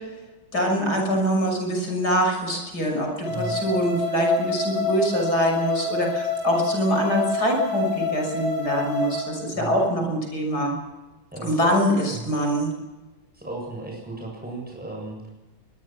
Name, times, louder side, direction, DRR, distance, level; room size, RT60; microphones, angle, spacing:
voice 1, 0.5-10.8 11.4-12.7, equal, 50° left, 1 dB, 6.9 m, -24 dB
sound 1, 3.2-9.2, left 3 dB, 75° right, 8.0 m, -27 dB
voice 2, 9.5-9.8 11.3-11.7 12.1-12.3 13.3-15.3, right 2 dB, 5° right, -1 dB, 7.3 m, -35 dB
24.0 x 21.5 x 6.2 m, 1.2 s
omnidirectional pair, 2.2 m